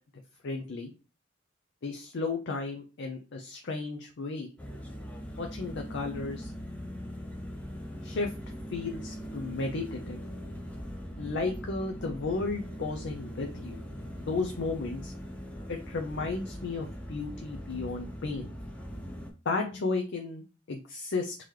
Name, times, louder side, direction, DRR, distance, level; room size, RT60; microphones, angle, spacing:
voice 1, 0.4-0.9 1.8-4.5 5.4-6.5 8.0-8.3 8.7-10.2 11.2-13.8 14.2-15.1 15.7-18.5 19.5-21.4, left 3 dB, 65° left, 3 dB, 0.5 m, -34 dB
sound 1, 4.6-19.3, equal, 5° left, 0.6 m, -41 dB
3.7 x 2.9 x 3.2 m, 0.34 s
head